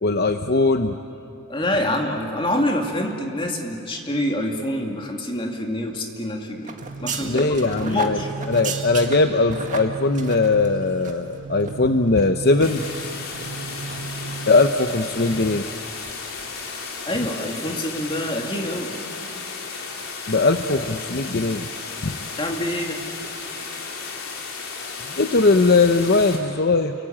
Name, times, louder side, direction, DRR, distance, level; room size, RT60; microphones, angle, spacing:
voice 1, 0.0-1.0 7.2-8.2 8.5-12.8 14.5-15.7 20.3-21.7 22.0-22.2 25.2-26.9, left 3 dB, 50° left, 7 dB, 0.8 m, -20 dB
voice 2, 1.5-6.7 7.0-8.3 17.1-18.9 22.4-23.0, left 1 dB, 25° left, 1 dB, 2.5 m, -26 dB
sound 1, 6.6-11.3 11.6-11.7 12.2-12.9 13.3-13.5 13.8-14.0 14.3-14.4, right 6 dB, 35° right, 2.0 m, -35 dB
sound 2, 6.8-15.6, right 3 dB, 60° right, 1.2 m, -35 dB
sound 3, 12.6-26.4, left 4 dB, 80° left, 3.8 m, -34 dB
29.0 x 23.5 x 8.9 m, 2.8 s
head